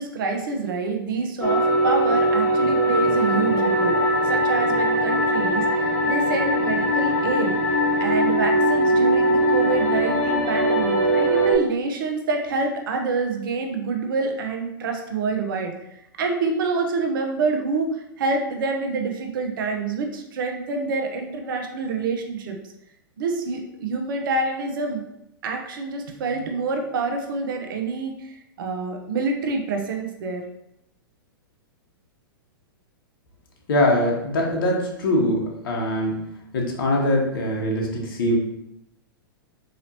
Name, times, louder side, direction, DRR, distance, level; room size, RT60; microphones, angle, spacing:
voice 1, 0.0-4.0 4.2-7.6 8.0-22.6 23.2-25.0 25.4-30.4, right 4 dB, 65° right, 4 dB, 0.7 m, -27 dB
sound 1, 1.4-11.5, equal, 10° left, 1.0 m, -21 dB
voice 2, 33.7-36.2 36.5-38.4, left 1 dB, 65° left, -1 dB, 1.0 m, -22 dB
4.1 x 2.9 x 2.8 m, 0.81 s
hypercardioid pair, 115°, 12 cm